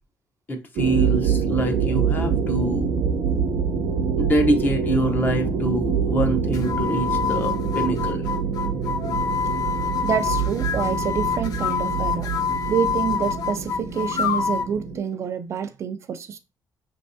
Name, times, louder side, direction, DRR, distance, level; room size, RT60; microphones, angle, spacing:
voice 1, 0.5-2.9 4.2-8.3, right 1 dB, 25° left, 0.8 m, -25 dB
sound 1, 0.8-15.0, right 6 dB, 85° right, 0.7 m, -25 dB
sound 2, 6.5-14.7, left 7 dB, 60° left, 0.4 m, -27 dB
voice 2, 10.0-16.4, right 7 dB, 40° right, 0.3 m, -27 dB
5.3 x 3.2 x 2.7 m
cardioid pair, 165°, 7 cm